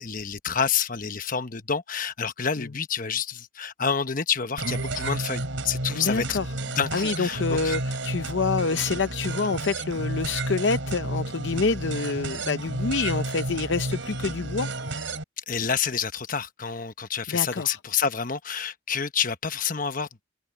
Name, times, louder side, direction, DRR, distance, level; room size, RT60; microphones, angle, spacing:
voice 1, 0.0-6.4 6.6-7.7 15.4-20.2, left 6 dB, 40° left, 1.1 m, -28 dB
sound 1, 4.6-15.2, right 2 dB, 70° right, 4.3 m, -31 dB
voice 2, 6.0-6.5 6.9-14.7 17.3-17.8, left 4 dB, 60° left, 0.6 m, -27 dB
head